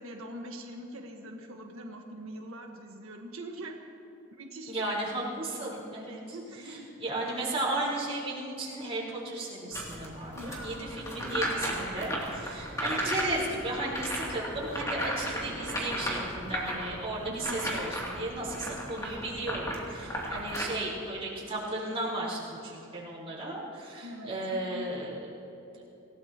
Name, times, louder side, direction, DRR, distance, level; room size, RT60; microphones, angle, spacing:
voice 1, 0.0-3.7 4.3-5.0 6.3-6.9 10.3-10.9 11.3-11.6 13.0-13.2 17.3-17.8 24.0-24.9, equal, 85° right, 2 dB, 1.5 m, -43 dB
voice 2, 4.7-6.4 6.6-25.3, right 2 dB, 30° right, -5 dB, 4.4 m, -35 dB
sound 1, 9.7-20.6, equal, 15° left, 2.7 m, -35 dB
26.5 x 17.0 x 3.0 m, 2.9 s
head